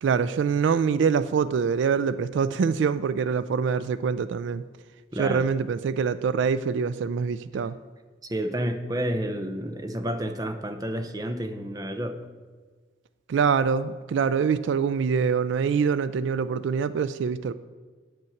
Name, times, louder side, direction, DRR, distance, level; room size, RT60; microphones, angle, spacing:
voice 1, 0.0-4.6 5.2-7.8 13.3-17.5, right 6 dB, 70° right, 15 dB, 0.3 m, -24 dB
voice 2, 5.1-5.5 8.2-12.2, right 1 dB, 20° right, 7 dB, 0.6 m, -30 dB
9.1 x 5.5 x 7.1 m, 1.5 s
head